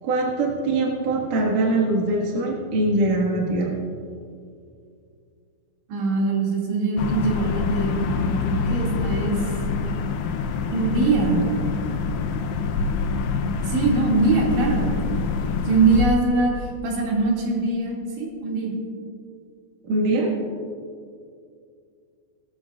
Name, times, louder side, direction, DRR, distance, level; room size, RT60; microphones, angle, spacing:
voice 1, 0.0-3.7 19.8-20.3, right 2 dB, 55° right, -2 dB, 2.8 m, -22 dB
voice 2, 5.9-9.4 10.7-11.5 13.6-14.9 15.6-18.7, right 3 dB, 85° right, -3 dB, 4.7 m, -22 dB
sound 1, 7.0-16.1, left 5 dB, 75° left, 2.6 m, -26 dB
19.0 x 13.5 x 2.4 m, 2.3 s
omnidirectional pair, 5.1 m